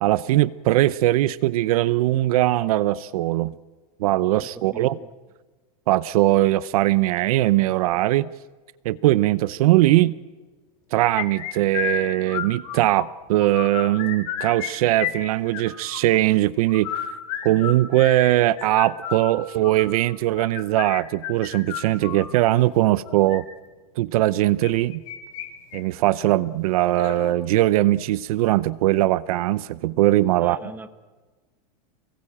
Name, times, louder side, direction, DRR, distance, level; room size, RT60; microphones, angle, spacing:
voice 1, 0.0-3.5 4.0-5.0 5.9-8.3 8.8-10.1 10.9-17.1 17.4-23.4 24.0-25.0 25.7-30.6, right 16 dB, 70° right, 18 dB, 0.7 m, -20 dB
voice 2, 4.7-5.1 30.4-30.9, right 3 dB, 10° right, 9 dB, 1.5 m, -40 dB
sound 1, 11.2-13.1 13.4-14.7 15.0-16.0 16.7-22.3 23.1-23.4 24.6-25.5 25.7-25.8 26.3-26.4 27.0-27.3, left 10 dB, 55° left, 3.8 m, -31 dB
29.0 x 20.0 x 8.8 m, 1.3 s
supercardioid pair, 150°, 19 cm